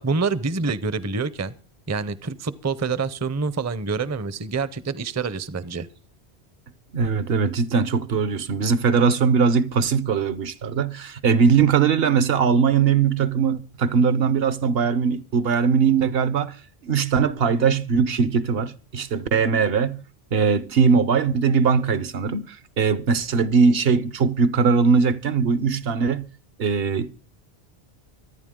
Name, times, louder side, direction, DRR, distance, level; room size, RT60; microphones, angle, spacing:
voice 1, 0.0-1.5 1.9-5.9, right 4 dB, 20° right, 0.5 m, -26 dB
voice 2, 6.9-16.6 16.8-20.0 20.3-26.3 26.6-27.1, right 6 dB, 70° right, 1.0 m, -20 dB
24.5 x 9.9 x 3.7 m
omnidirectional pair, 1.1 m